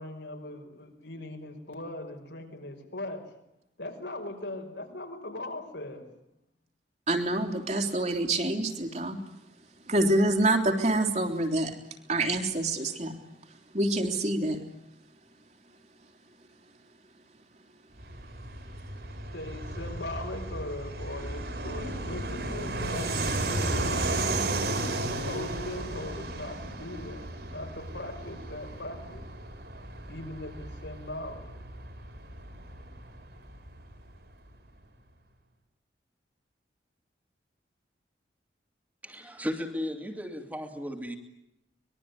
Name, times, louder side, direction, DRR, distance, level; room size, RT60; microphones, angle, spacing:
voice 1, 0.0-3.3 3.8-6.1 19.3-24.3 24.9-29.3 30.1-31.5, left 1 dB, 75° left, 3 dB, 5.8 m, -40 dB
voice 2, 7.1-9.2 9.9-11.7 12.1-13.1 13.7-14.6, right 1 dB, 40° right, 5 dB, 3.3 m, -26 dB
Fixed-wing aircraft airplane, 18.0-34.2, right 2 dB, 60° right, 5.6 m, -34 dB
voice 3, 39.0-41.2, equal, 10° right, 4 dB, 2.6 m, -35 dB
24.5 x 22.0 x 9.7 m, 0.82 s
head